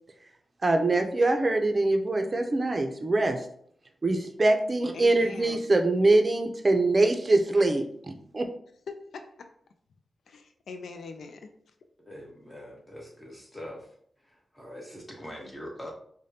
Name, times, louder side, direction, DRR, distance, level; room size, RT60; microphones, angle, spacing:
voice 1, 0.6-3.4 4.0-8.5, right 2 dB, 40° right, 5 dB, 0.5 m, -24 dB
voice 2, 4.9-5.6 8.9-9.5 10.3-11.5, left 4 dB, 85° left, 7 dB, 0.3 m, -42 dB
voice 3, 12.1-13.9 14.2-15.9, equal, 20° left, -1 dB, 1.3 m, -43 dB
4.9 x 2.2 x 2.8 m, 0.63 s
cardioid pair, 60°, 0 cm